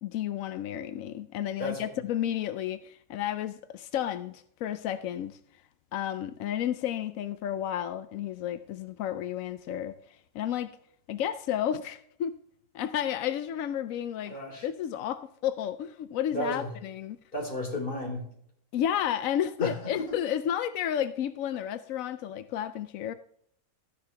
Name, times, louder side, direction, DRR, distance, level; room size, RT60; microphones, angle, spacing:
voice 1, 0.0-5.4 5.9-10.8 11.1-12.3 12.7-14.3 14.6-17.2 18.7-23.1, left 10 dB, 75° left, 12 dB, 0.8 m, -32 dB
voice 2, 14.3-14.7 16.3-16.7 17.3-18.2 19.6-19.7, left 1 dB, 30° left, 0 dB, 3.6 m, -33 dB
13.5 x 10.5 x 3.4 m, 0.68 s
omnidirectional pair, 2.0 m